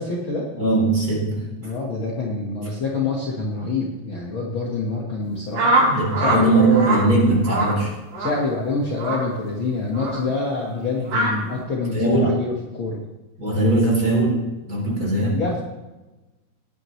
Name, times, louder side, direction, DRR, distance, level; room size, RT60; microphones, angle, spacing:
voice 1, 0.0-0.5 1.6-5.8 6.2-6.6 8.2-13.0 15.3-15.6, left 3 dB, 75° left, -2 dB, 1.1 m, -26 dB
voice 2, 0.5-1.5 5.8-7.9 11.9-12.4 13.4-15.4, right 2 dB, 20° right, -4 dB, 3.5 m, -20 dB
sound 1, 5.5-6.4 6.7-7.0 7.4-7.7 8.1-8.4 9.0-9.2 9.9-10.2 11.1-11.3, right 2 dB, 70° right, 5.8 m, -21 dB
19.5 x 9.6 x 3.2 m, 1.1 s
omnidirectional pair, 4.9 m